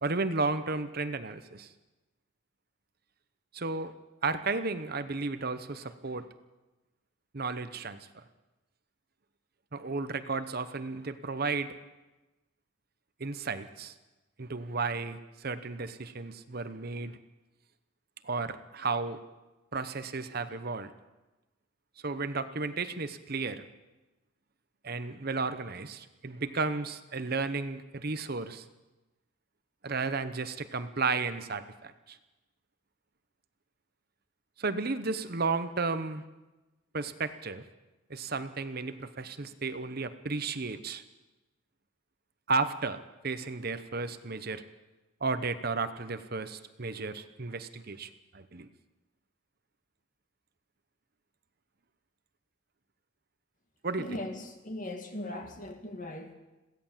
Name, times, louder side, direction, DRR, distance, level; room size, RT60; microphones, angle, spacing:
voice 1, 0.0-1.7 3.5-3.9 4.2-6.3 7.3-8.2 9.7-11.8 13.2-13.9 14.4-17.2 18.2-19.2 19.7-20.9 22.0-23.7 24.8-28.6 29.8-32.2 34.6-36.2 36.9-37.6 38.1-41.0 42.5-44.6 45.2-48.7 53.8-54.2, right 4 dB, 45° right, 11 dB, 0.9 m, -33 dB
voice 2, 54.0-56.3, left 1 dB, 40° left, 5 dB, 2.3 m, -39 dB
22.5 x 16.5 x 7.4 m, 1.1 s
head